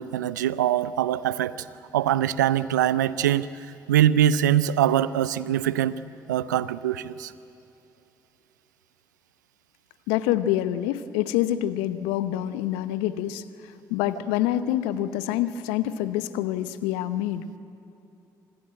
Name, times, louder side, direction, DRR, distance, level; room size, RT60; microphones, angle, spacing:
voice 1, 0.0-1.5 1.9-3.5 3.9-6.0 6.3-7.3, right 11 dB, 85° right, 17 dB, 0.5 m, -23 dB
voice 2, 10.1-17.5, left 13 dB, 75° left, 14 dB, 0.9 m, -26 dB
26.0 x 19.5 x 9.0 m, 2.8 s
hypercardioid pair, 45°, 9 cm